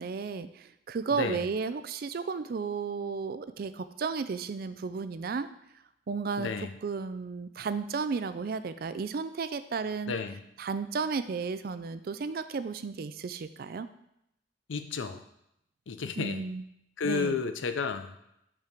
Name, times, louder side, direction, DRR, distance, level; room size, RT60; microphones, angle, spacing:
voice 1, 0.0-5.5 6.1-6.5 6.8-10.1 10.6-13.9 16.2-16.6 17.0-17.4, right 5 dB, 50° right, 12 dB, 0.4 m, -33 dB
voice 2, 1.1-1.4 6.4-6.7 10.1-10.4 14.7-15.2 15.9-16.4 17.0-18.2, left 5 dB, 85° left, 8 dB, 0.6 m, -32 dB
5.6 x 4.6 x 5.1 m, 0.79 s
head